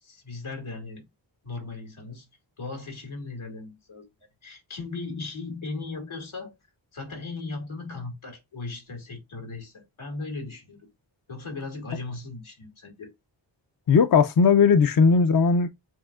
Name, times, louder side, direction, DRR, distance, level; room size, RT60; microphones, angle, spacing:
voice 1, 0.0-1.0 1.4-2.3 2.6-4.1 4.4-6.6 6.9-10.9 11.3-13.1, left 3 dB, 90° left, 2.3 m, -37 dB
voice 2, 13.9-15.7, left 5 dB, 50° left, 0.5 m, -18 dB
7.3 x 2.7 x 2.3 m
wide cardioid pair, 80°, 47 cm